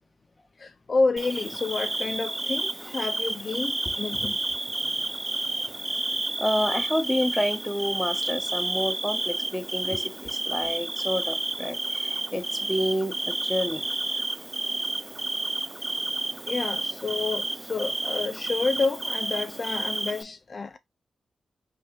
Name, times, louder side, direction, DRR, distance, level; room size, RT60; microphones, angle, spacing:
voice 1, 0.6-4.4 9.9-10.0 16.5-20.8, left 3 dB, 50° left, 0.4 m, -29 dB
Bird / Cricket, 1.2-20.2, right 2 dB, 25° right, 0.4 m, -30 dB
voice 2, 6.4-13.8, equal, 15° left, 1.1 m, -29 dB
3.9 x 2.9 x 3.8 m
cardioid pair, 55°, 0 cm